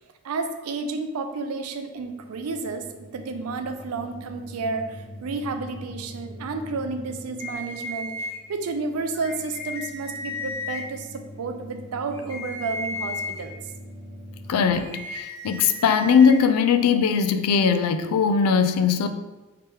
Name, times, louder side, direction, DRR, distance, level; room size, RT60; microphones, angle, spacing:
voice 1, 0.2-13.6, right 3 dB, 80° right, 7 dB, 0.4 m, -31 dB
sound 1, 1.9-14.5, left 1 dB, 15° right, 1.1 m, -43 dB
sound 2, 7.4-8.4 9.1-10.8 12.1-13.4 14.7-16.4, left 2 dB, 10° left, 0.4 m, -34 dB
voice 2, 14.5-19.1, left 6 dB, 85° left, 9 dB, 0.3 m, -20 dB
3.2 x 2.9 x 3.4 m, 1.2 s
head